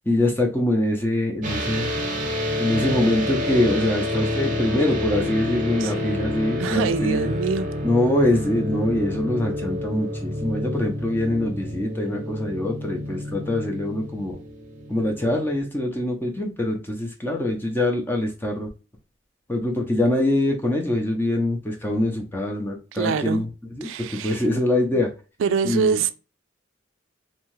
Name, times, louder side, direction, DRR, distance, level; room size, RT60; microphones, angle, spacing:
voice 1, 0.1-1.9 2.6-7.3 7.8-14.4 14.9-18.7 19.5-23.5 23.8-25.1 25.6-26.0, left 1 dB, 10° left, 0.5 m, -24 dB
sound 1, 1.4-15.6, left 1 dB, 40° right, 0.8 m, -28 dB
voice 2, 6.6-7.7 22.9-23.5 23.8-24.5 24.9-25.0 25.4-26.1, right 6 dB, 75° right, 0.3 m, -25 dB
2.6 x 2.3 x 3.0 m
head